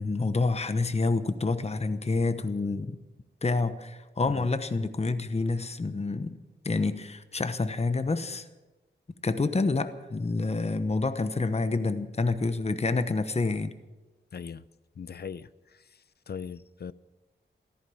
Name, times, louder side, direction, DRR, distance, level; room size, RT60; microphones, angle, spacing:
voice 1, 0.0-3.0 3.4-6.4 6.6-8.5 9.2-13.7, left 3 dB, 35° left, 1.0 m, -28 dB
voice 2, 14.3-14.6 15.0-15.5 16.3-16.9, left 6 dB, 55° left, 0.6 m, -39 dB
14.5 x 14.0 x 7.0 m
wide cardioid pair, 75°, 20 cm